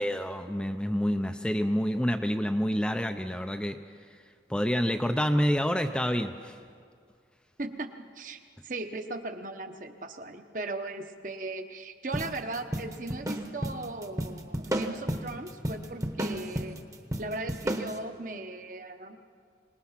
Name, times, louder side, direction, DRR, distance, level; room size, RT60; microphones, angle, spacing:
voice 1, 0.0-3.8 4.5-6.6, equal, 5° left, 6 dB, 0.5 m, -28 dB
voice 2, 7.6-16.8 17.2-19.2, right 2 dB, 45° right, 7 dB, 1.0 m, -38 dB
sound 1, 12.1-18.0, right 1 dB, 20° right, 1.0 m, -33 dB
25.0 x 19.5 x 5.8 m, 2.2 s
head